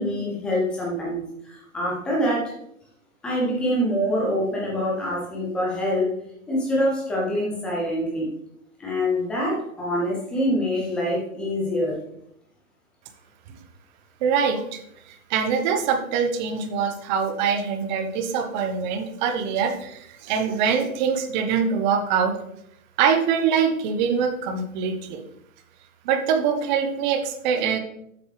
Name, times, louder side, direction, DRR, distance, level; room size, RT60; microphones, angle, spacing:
voice 1, 0.0-2.5 3.2-6.1 6.5-8.3 8.8-12.0, equal, ahead, -4 dB, 0.3 m, -25 dB
voice 2, 14.2-14.8 15.1-22.4 23.0-25.2 26.0-27.8, right 6 dB, 35° right, 6 dB, 1.0 m, -24 dB
8.1 x 6.3 x 3.3 m, 0.77 s
hypercardioid pair, 130°, 42 cm